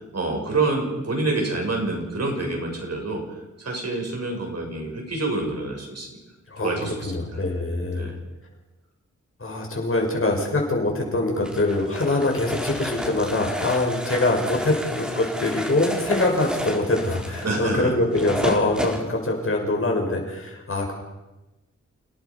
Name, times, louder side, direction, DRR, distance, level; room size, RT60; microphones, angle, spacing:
voice 1, 0.0-3.2 3.6-6.2 6.6-7.2 7.9-8.2 17.4-17.9, right 2 dB, 60° right, 1 dB, 6.7 m, -27 dB
voice 2, 6.5-6.8 7.0-8.1 9.4-20.9, left 2 dB, 45° left, 0 dB, 6.3 m, -24 dB
sound 1, 11.4-19.0, equal, 5° right, 4.6 m, -31 dB
29.5 x 18.5 x 5.5 m, 1.1 s
wide cardioid pair, 115°, 30 cm